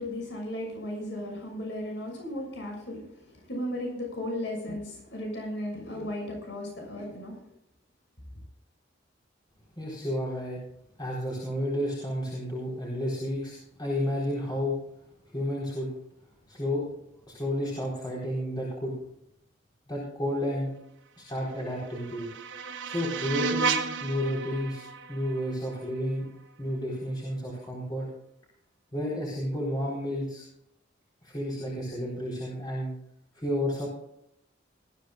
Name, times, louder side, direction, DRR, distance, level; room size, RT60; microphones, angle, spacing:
voice 1, 0.0-7.5, left 1 dB, 65° left, 1 dB, 6.5 m, -35 dB
voice 2, 9.8-10.6 11.0-14.8 15.3-15.9 16.5-16.8 17.3-18.9 19.9-20.7 21.2-22.3 22.8-24.8 25.1-26.3 26.6-28.1 28.9-30.4 31.2-32.9 33.3-33.9, equal, 25° left, -4 dB, 4.2 m, -31 dB
sound 1, 21.4-26.4, right 5 dB, 80° right, 1.2 m, -34 dB
20.0 x 14.0 x 2.4 m, 0.74 s
head